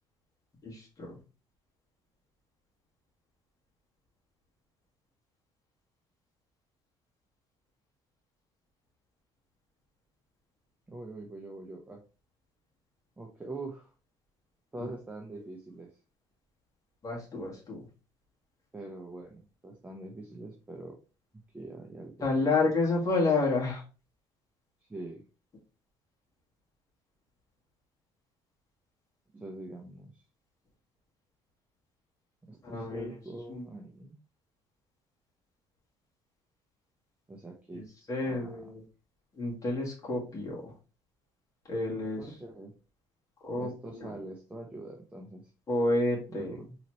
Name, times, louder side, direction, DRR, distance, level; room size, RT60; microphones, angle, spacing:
voice 1, 0.6-1.2 14.8-14.9 17.0-17.8 22.2-23.8 32.6-33.2 33.5-33.6 37.7-38.8 39.4-40.7 41.7-42.3 43.4-44.1 45.7-46.5, left 3 dB, 30° left, -3 dB, 1.9 m, -30 dB
voice 2, 10.9-12.0 13.2-13.9 14.7-15.9 18.7-21.0 21.5-22.1 24.8-25.2 29.3-30.2 32.5-34.1 37.3-37.8 38.2-38.7 42.0-42.7 43.6-45.5 46.3-46.8, right 2 dB, 10° right, 1 dB, 0.8 m, -44 dB
4.0 x 3.1 x 3.1 m, 0.33 s
cardioid pair, 100°, 11 cm